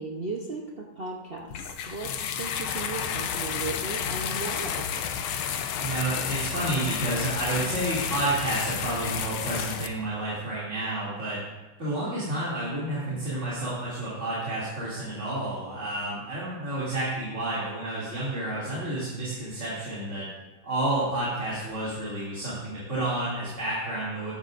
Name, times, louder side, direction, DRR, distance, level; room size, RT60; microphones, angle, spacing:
voice 1, 0.0-4.8, right 3 dB, 60° right, -1 dB, 0.6 m, -36 dB
sound 1, 1.5-9.9, left 8 dB, 85° left, 1.6 m, -31 dB
voice 2, 5.8-11.4 11.8-20.3 20.6-24.3, right 1 dB, 35° right, -9 dB, 2.9 m, -30 dB
14.0 x 11.5 x 2.6 m, 1.1 s
omnidirectional pair, 2.3 m